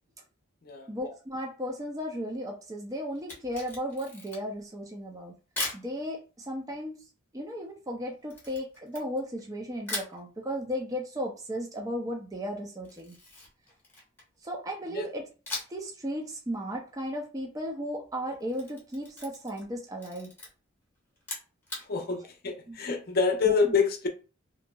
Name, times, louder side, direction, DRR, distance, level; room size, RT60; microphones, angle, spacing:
voice 1, 0.9-5.3 5.7-7.0 7.3-13.2 14.4-15.3 15.7-20.3 22.7-22.8 23.4-23.7, equal, 15° right, 0.4 m, -35 dB
Camera, 3.2-4.6 5.6-5.9 8.3-9.5 9.9-10.2 12.8-14.4 15.5-15.9 16.2-16.3 18.3-19.7 20.0-20.5 21.2-21.9, left 2 dB, 10° left, 0.9 m, -38 dB
voice 2, 21.9-24.1, left 5 dB, 50° left, 0.6 m, -27 dB
2.8 x 2.6 x 2.3 m
head